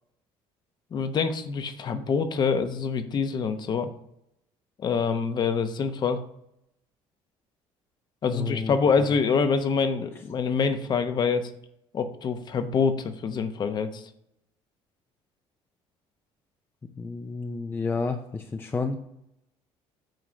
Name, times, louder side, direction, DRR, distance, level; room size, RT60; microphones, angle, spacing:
voice 1, 0.9-3.9 4.8-6.2 8.2-11.5 11.9-14.1, left 5 dB, 40° left, 9 dB, 0.9 m, -26 dB
voice 2, 8.3-8.8 17.0-19.1, left 4 dB, 20° left, 6 dB, 0.5 m, -30 dB
9.1 x 3.1 x 6.1 m, 0.77 s
cardioid pair, 115°, 11 cm